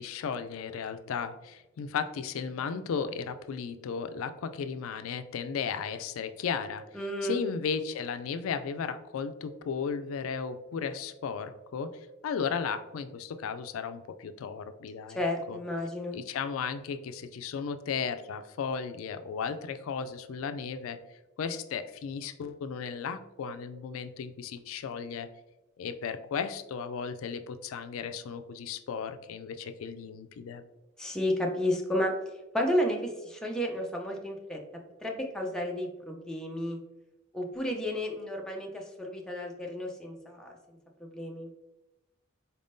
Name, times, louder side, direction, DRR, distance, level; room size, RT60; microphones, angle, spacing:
voice 1, 0.0-6.8 7.2-11.9 12.2-15.2 15.5-15.6 16.1-21.0 21.4-25.3 25.8-30.6, left 6 dB, 90° left, 10 dB, 0.3 m, -35 dB
voice 2, 6.9-7.4 15.1-16.2 31.0-32.1 32.5-34.6 35.0-36.8 37.3-40.6 41.0-41.5, left 1 dB, 5° left, 0 dB, 0.5 m, -32 dB
4.3 x 3.5 x 2.6 m, 0.98 s
head